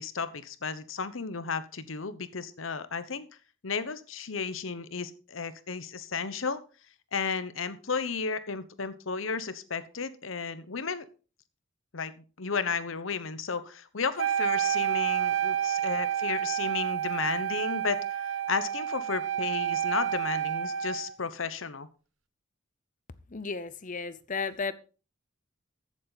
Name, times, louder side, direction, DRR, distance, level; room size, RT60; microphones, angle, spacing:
voice 1, 0.0-3.3 3.6-6.6 7.1-11.0 11.9-12.1 12.4-21.9, left 5 dB, 75° left, 1.0 m, -33 dB
Wind instrument woodwind instrument, 14.2-21.1, right 10 dB, 70° right, 0.8 m, -29 dB
voice 2, 23.3-24.7, left 4 dB, 40° left, 0.8 m, -34 dB
14.5 x 7.5 x 4.1 m
head